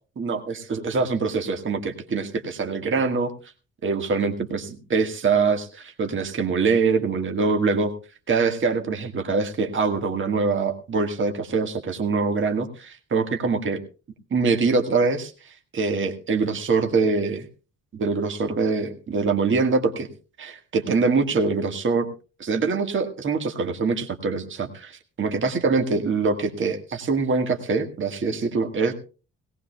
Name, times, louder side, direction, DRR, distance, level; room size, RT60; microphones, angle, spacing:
voice 1, 0.2-3.3 3.8-7.9 8.3-13.8 14.3-17.5 17.9-20.1 20.4-22.1 22.4-28.9, right 4 dB, 40° right, 5 dB, 1.6 m, -24 dB
18.0 x 18.0 x 2.2 m, 0.34 s
cardioid pair, 90°, 30 cm